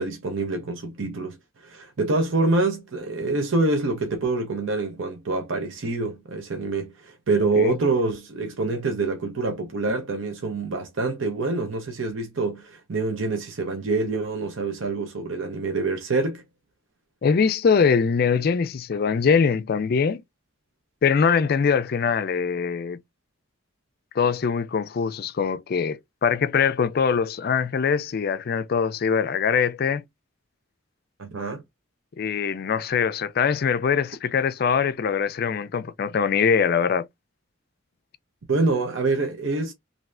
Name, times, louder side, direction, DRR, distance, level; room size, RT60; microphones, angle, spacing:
voice 1, 0.0-1.4 1.6-16.4 31.2-31.6 38.5-39.7, right 3 dB, 70° right, 0.7 m, -26 dB
voice 2, 17.2-20.2 21.0-23.0 24.2-30.0 32.2-37.1, left 6 dB, 50° left, 0.4 m, -22 dB
3.2 x 2.6 x 2.4 m
head